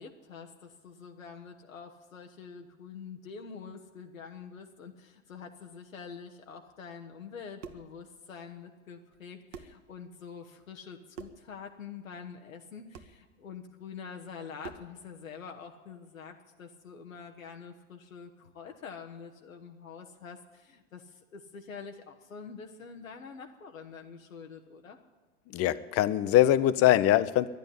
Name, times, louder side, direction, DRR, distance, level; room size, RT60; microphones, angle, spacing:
voice 1, 0.0-25.0, left 6 dB, 85° left, 3 dB, 1.1 m, -46 dB
sound 1, 7.5-7.9 9.1-9.2 9.5-9.8 11.1-11.5 12.9-13.2 14.6-15.0, right 6 dB, 70° right, 1.1 m, -45 dB
voice 2, 25.5-27.5, left 13 dB, 35° left, 15 dB, 0.7 m, -23 dB
12.0 x 10.5 x 9.9 m, 1.3 s
hypercardioid pair, 85°, 39 cm